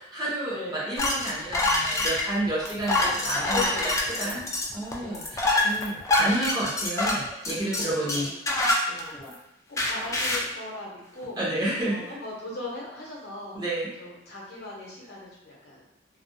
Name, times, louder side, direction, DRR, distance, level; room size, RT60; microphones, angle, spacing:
voice 1, 0.1-4.4 4.7-8.3 11.4-12.2 13.5-13.9, right 1 dB, 20° right, -6 dB, 0.6 m, -30 dB
sound 1, 1.0-9.3 9.8-10.5, left 2 dB, 15° left, 0.3 m, -26 dB
voice 2, 3.5-4.5 5.0-5.3 7.7-8.2 8.9-9.1 9.7-11.4 11.9-13.6 14.0-15.8, left 3 dB, 60° left, -4 dB, 0.7 m, -38 dB
2.3 x 2.1 x 2.5 m, 0.85 s
head